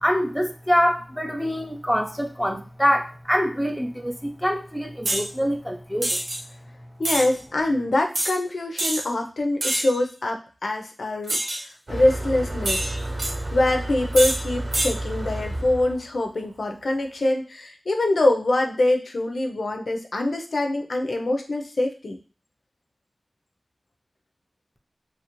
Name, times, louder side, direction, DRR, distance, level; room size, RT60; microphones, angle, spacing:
voice 1, 0.0-6.2, equal, ahead, 2 dB, 0.5 m, -25 dB
sound 1, 5.0-5.3 6.0-6.4 7.0-7.3 8.1-8.3 8.8-9.0 9.6-10.0 11.3-11.6 12.6-13.3 14.1-14.4 14.7-14.9, right 1 dB, 75° right, 0.6 m, -25 dB
voice 2, 7.0-11.4 11.9-12.9 13.5-22.2, left 1 dB, 80° left, 3 dB, 0.4 m, -24 dB
Motor vehicle (road), 11.9-17.0, right 1 dB, 50° right, 0.8 m, -31 dB
2.8 x 2.5 x 2.9 m, 0.36 s
wide cardioid pair, 70°, 0 cm